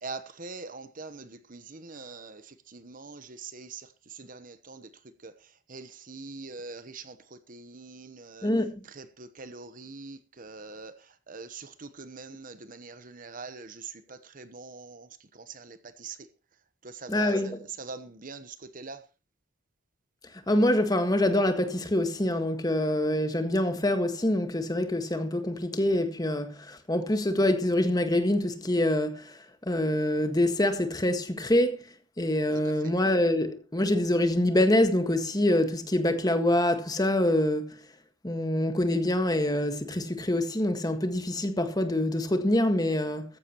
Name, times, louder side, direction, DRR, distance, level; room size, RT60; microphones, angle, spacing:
voice 1, 0.0-2.4 2.7-3.9 4.1-4.9 5.2-5.3 5.7-7.2 7.5-8.5 9.0-10.9 11.3-15.1 15.3-16.2 16.8-19.0, right 4 dB, 45° right, 1.0 m, -43 dB
voice 2, 8.4-8.8 17.1-17.6 20.5-29.4 29.7-31.8 32.2-37.8 38.2-43.2, left 1 dB, 20° left, 1.7 m, -25 dB
15.5 x 14.5 x 3.1 m
head